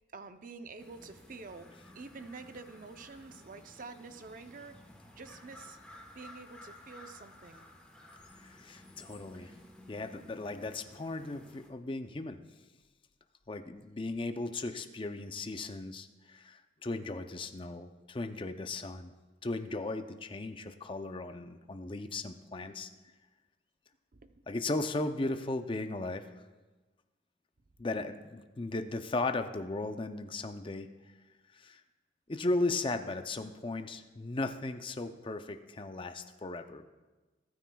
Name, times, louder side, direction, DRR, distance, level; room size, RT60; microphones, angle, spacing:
voice 1, 0.1-4.8 5.2-7.7 9.3-9.7 24.1-24.4 27.9-28.3, right 4 dB, 45° right, 8 dB, 0.6 m, -48 dB
sound 1, 0.8-11.7, left 1 dB, 5° left, 1.1 m, -55 dB
voice 2, 8.4-9.5 9.9-12.4 13.5-19.1 19.4-22.9 24.5-26.2 27.8-30.9 31.5-31.8 32.3-36.8, left 2 dB, 25° left, 8 dB, 0.5 m, -36 dB
19.0 x 9.2 x 2.3 m, 1.2 s
head